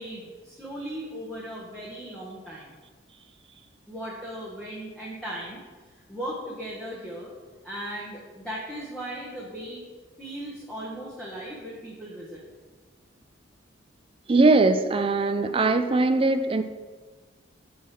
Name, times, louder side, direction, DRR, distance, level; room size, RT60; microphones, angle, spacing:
voice 1, 0.0-2.7 3.9-5.6 6.1-7.3 7.6-9.9 10.2-12.4, right 1 dB, 5° left, -6 dB, 1.1 m, -37 dB
voice 2, 14.3-16.6, right 3 dB, 30° right, 9 dB, 0.4 m, -21 dB
6.2 x 5.5 x 6.0 m, 1.4 s
head